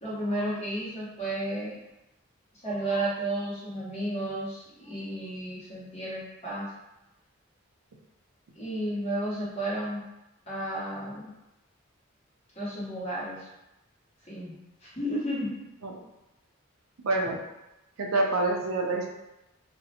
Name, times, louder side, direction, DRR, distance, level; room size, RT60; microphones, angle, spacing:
voice 1, 0.0-1.8 2.6-6.7 8.5-10.1 10.5-11.3 12.6-13.5 14.3-14.6 14.8-15.6, right 1 dB, 30° left, -9 dB, 1.0 m, -32 dB
voice 2, 17.0-17.4 18.0-19.2, right 2 dB, 80° right, 0 dB, 0.5 m, -27 dB
2.5 x 2.1 x 2.7 m, 0.95 s
head